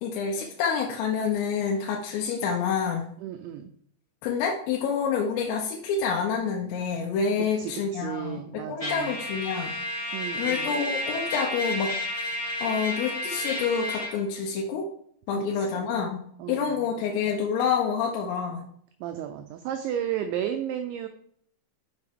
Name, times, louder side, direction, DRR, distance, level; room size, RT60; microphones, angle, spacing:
voice 1, 0.0-3.1 4.2-9.8 10.4-12.3 12.6-14.9 15.3-18.6, left 6 dB, 80° left, -1 dB, 3.5 m, -28 dB
voice 2, 3.2-3.7 7.6-9.2 10.1-10.7 15.6-15.9 16.4-16.9 19.0-21.1, right 10 dB, 90° right, 6 dB, 2.6 m, -33 dB
Trumpet, 8.8-14.1, left 1 dB, 20° left, 0.8 m, -31 dB
7.7 x 6.7 x 3.6 m, 0.64 s
omnidirectional pair, 5.9 m